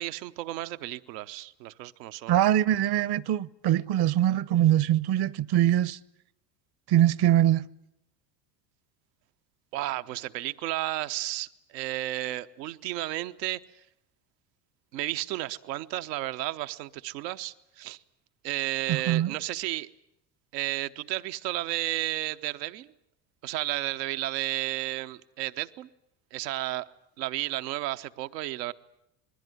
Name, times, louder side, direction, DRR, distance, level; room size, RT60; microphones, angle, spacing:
voice 1, 0.0-2.4 9.7-13.6 14.9-18.0 18.4-19.9 20.5-22.9 23.4-25.9 26.3-26.9 27.2-28.7, right 16 dB, 80° right, 1.1 m, -32 dB
voice 2, 2.3-6.0 6.9-7.7 18.9-19.3, right 12 dB, 50° right, 1.0 m, -23 dB
26.5 x 21.0 x 9.4 m
hypercardioid pair, 80°, 49 cm